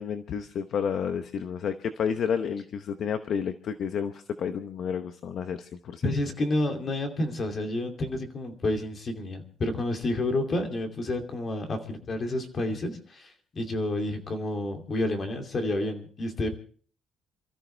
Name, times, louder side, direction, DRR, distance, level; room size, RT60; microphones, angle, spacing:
voice 1, 0.0-6.1, left 7 dB, 50° left, 9 dB, 0.8 m, -31 dB
voice 2, 6.0-16.5, left 1 dB, 30° left, 5 dB, 2.6 m, -30 dB
28.5 x 14.0 x 3.3 m, 0.43 s
cardioid pair, 170°, 0 cm